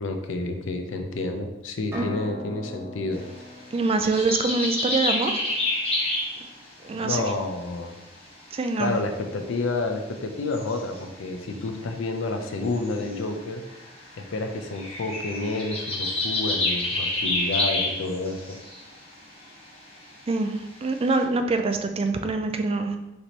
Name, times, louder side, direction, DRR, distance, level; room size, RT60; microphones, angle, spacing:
voice 1, 0.0-3.2 6.9-8.0 8.8-13.7 14.2-18.6, left 3 dB, 85° left, 6 dB, 0.5 m, -29 dB
sound 1, 1.9-5.7, left 1 dB, 15° right, 0.8 m, -41 dB
sound 2, 3.1-7.1 7.8-7.9 8.1-8.9 9.4-9.5 10.5-11.3 12.4-19.0 19.3-20.1 20.5-21.2, left 2 dB, 30° left, 0.9 m, -29 dB
voice 2, 3.7-5.5 6.8-7.3 8.5-8.9 20.3-23.0, right 3 dB, 30° right, 6 dB, 0.3 m, -25 dB
3.3 x 2.9 x 4.1 m, 0.96 s
head